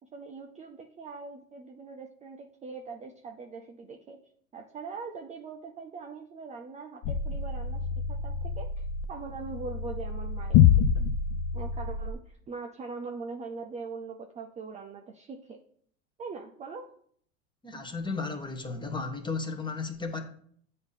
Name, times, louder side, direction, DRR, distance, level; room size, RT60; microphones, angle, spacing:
voice 1, 0.1-4.2 4.5-11.1 11.5-15.6 16.2-16.9, right 4 dB, 20° right, 0.5 m, -42 dB
sound 1, 7.0-12.1, left 8 dB, 40° left, 0.4 m, -26 dB
voice 2, 17.6-20.2, left 4 dB, 10° left, 0.9 m, -34 dB
7.9 x 2.8 x 5.2 m
hypercardioid pair, 95°, 41 cm